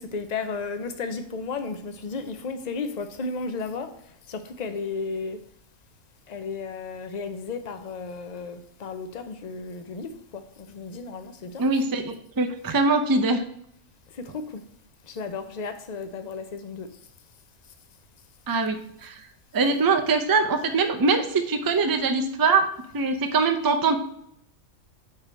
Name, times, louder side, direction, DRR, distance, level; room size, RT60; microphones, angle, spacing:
voice 1, 0.0-3.9 4.3-5.4 6.3-11.6 14.3-14.6 15.1-16.9 19.6-19.7, left 4 dB, 45° left, 0.6 m, -34 dB
voice 2, 11.6-13.4 18.5-19.2 19.5-22.7 22.9-23.9, right 4 dB, 35° right, 0.3 m, -23 dB
4.9 x 4.7 x 6.0 m
omnidirectional pair, 1.4 m